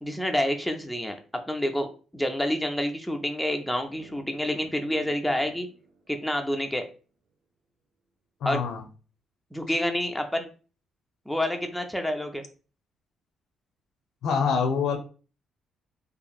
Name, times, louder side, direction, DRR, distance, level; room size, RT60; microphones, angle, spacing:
voice 1, 0.0-5.7 6.1-6.8 8.5-8.6 9.5-10.5 11.3-12.4, left 1 dB, ahead, 4 dB, 0.3 m, -28 dB
sound 1, 3.8-6.9, right 3 dB, 90° right, 0.6 m, -52 dB
voice 2, 8.4-8.8 14.2-15.0, left 6 dB, 75° left, 5 dB, 0.5 m, -25 dB
2.8 x 2.4 x 2.3 m, 0.37 s
cardioid pair, 130°, 0 cm